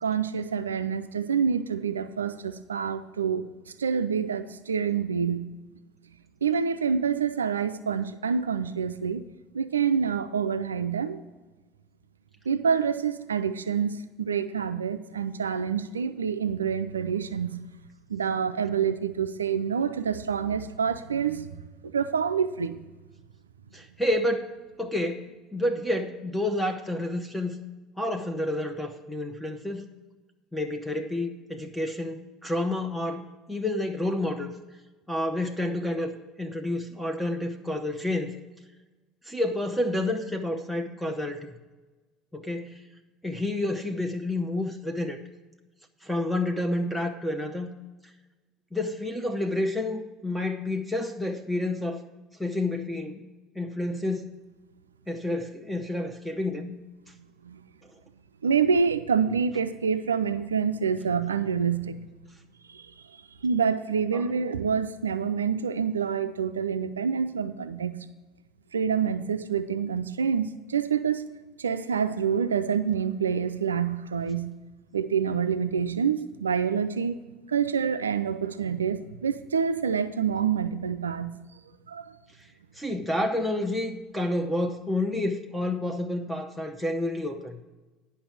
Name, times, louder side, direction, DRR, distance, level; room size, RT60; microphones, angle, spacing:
voice 1, 0.0-3.5 3.8-5.4 6.4-9.2 9.5-11.2 12.5-17.6 18.1-21.6 21.8-22.8 57.4-57.6 58.4-62.0 62.7-68.1 68.7-71.3 71.6-74.5 74.9-77.2 77.5-81.3 81.9-82.1, right 6 dB, 90° right, 10 dB, 0.4 m, -27 dB
voice 2, 23.7-24.5 24.8-25.2 25.5-27.6 28.0-29.9 30.5-34.5 35.1-38.3 39.2-41.4 42.3-42.8 43.2-45.2 46.0-47.7 48.7-52.0 52.4-53.2 53.6-54.3 55.1-56.7 64.1-64.2 82.7-87.6, left 1 dB, 5° left, 4 dB, 0.9 m, -29 dB
10.0 x 5.6 x 6.1 m, 1.2 s
hypercardioid pair, 70°, 0 cm